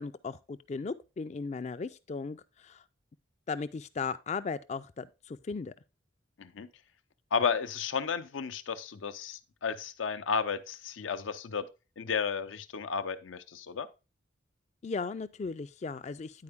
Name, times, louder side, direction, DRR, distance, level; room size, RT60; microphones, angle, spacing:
voice 1, 0.0-2.8 3.5-5.7 14.8-16.4, left 4 dB, 35° left, 0.3 m, -37 dB
voice 2, 7.3-11.7 12.0-13.9, left 6 dB, 85° left, 0.6 m, -33 dB
9.7 x 4.4 x 3.4 m
head